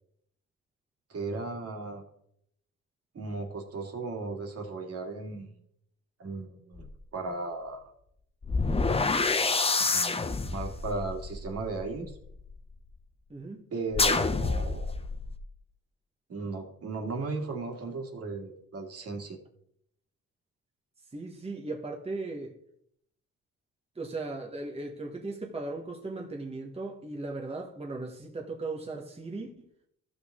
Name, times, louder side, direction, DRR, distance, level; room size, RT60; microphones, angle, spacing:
voice 1, 1.1-2.0 3.1-5.6 6.2-7.8 9.8-12.2 13.7-14.9 16.3-19.4, right 3 dB, 50° right, 2.2 m, -36 dB
sound 1, 6.8-6.9 8.4-12.5 13.9-15.4, left 3 dB, 20° left, 0.7 m, -28 dB
voice 2, 13.3-13.7 21.1-22.5 23.9-29.6, right 3 dB, 20° right, 1.4 m, -37 dB
13.5 x 6.0 x 3.8 m
cardioid pair, 90°, 30 cm